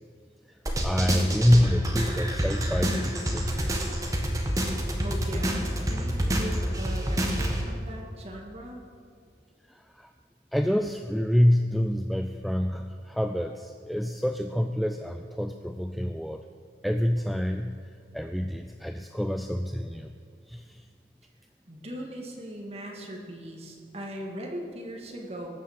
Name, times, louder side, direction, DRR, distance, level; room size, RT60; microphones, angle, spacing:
sound 1, 0.7-7.6, equal, 20° right, 1.5 m, -28 dB
voice 1, 0.8-3.7 9.7-10.1 10.5-16.4 16.8-17.8 18.1-20.1 20.5-20.8, equal, ahead, 6 dB, 0.3 m, -27 dB
voice 2, 5.0-8.8 21.7-25.5, right 1 dB, 35° right, 0 dB, 2.1 m, -39 dB
18.5 x 7.3 x 7.4 m, 2.2 s
head